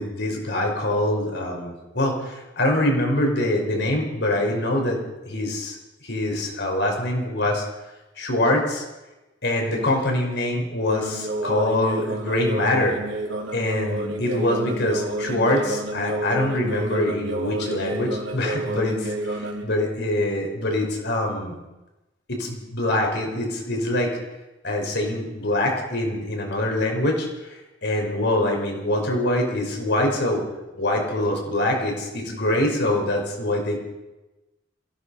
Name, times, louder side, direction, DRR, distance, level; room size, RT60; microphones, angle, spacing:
voice 1, 0.0-7.6 8.2-8.8 9.4-13.0 13.5-21.5 22.3-24.2 24.6-30.4 30.8-33.8, left 1 dB, 65° left, 2 dB, 5.3 m, -24 dB
sound 1, 10.9-19.6, right 1 dB, 75° right, 3.8 m, -30 dB
27.0 x 16.5 x 5.8 m, 1.1 s
head